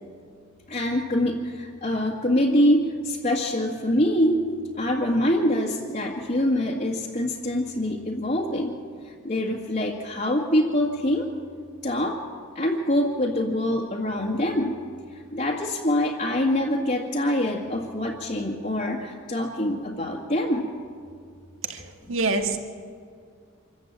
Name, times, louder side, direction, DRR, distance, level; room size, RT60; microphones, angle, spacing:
voice 1, 0.7-4.4 4.7-8.8 9.0-11.3 11.8-12.2 12.6-14.7 15.1-20.7 22.1-22.2, left 1 dB, 40° left, -4 dB, 2.0 m, -25 dB
voice 2, 21.6-22.6, right 3 dB, 65° right, 5 dB, 1.9 m, -26 dB
26.0 x 14.5 x 8.9 m, 2.1 s
head